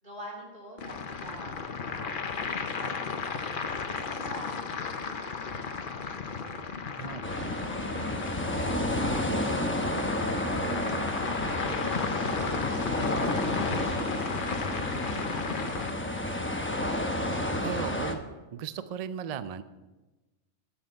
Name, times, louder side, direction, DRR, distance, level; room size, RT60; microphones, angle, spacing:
voice 1, 0.0-3.6 4.0-6.0 6.4-6.8 7.3-8.1 11.6-17.1, equal, 50° right, -1 dB, 3.4 m, -48 dB
sound 1, 0.8-15.9, left 5 dB, 50° left, 0.9 m, -35 dB
voice 2, 7.0-7.7 17.6-18.2 18.5-19.6, right 8 dB, 75° right, 13 dB, 0.3 m, -36 dB
sound 2, 7.2-18.2, left 1 dB, 10° left, 0.8 m, -31 dB
13.0 x 7.3 x 5.4 m, 1.1 s
omnidirectional pair, 1.3 m